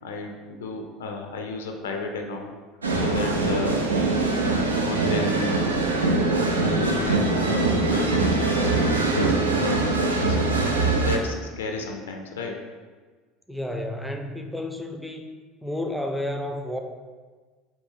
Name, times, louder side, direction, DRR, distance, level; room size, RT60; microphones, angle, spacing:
voice 1, 0.0-2.5 3.0-3.9 4.4-5.8 6.6-10.5 11.0-12.6, left 3 dB, 75° left, 3 dB, 0.4 m, -33 dB
sound 1, 2.8-11.2, right 3 dB, 85° right, 0.4 m, -23 dB
voice 2, 13.5-15.2 15.6-16.8, left 1 dB, ahead, 4 dB, 0.5 m, -31 dB
4.3 x 2.7 x 3.6 m, 1.4 s
figure-of-eight pair, 70°, 0 cm